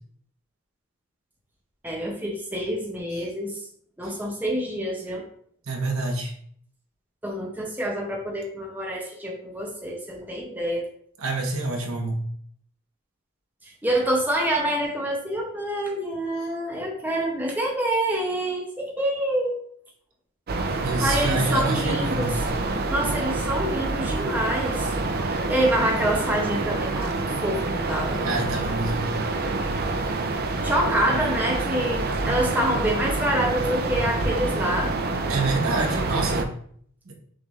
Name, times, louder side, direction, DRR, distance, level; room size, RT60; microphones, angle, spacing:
voice 1, 1.8-3.6 4.0-5.2 7.2-10.9 13.8-19.6 21.0-22.3 22.9-25.0 25.3-28.2 30.6-34.9, right 1 dB, 10° right, -2 dB, 0.6 m, -26 dB
voice 2, 5.7-6.3 11.2-12.2 20.8-22.3 28.2-29.1 35.3-36.5 37.1-37.2, right 2 dB, 65° right, 1 dB, 1.0 m, -27 dB
sound 1, 20.5-36.4, right 3 dB, 45° right, 0.4 m, -27 dB
6.1 x 2.5 x 3.1 m, 0.63 s
head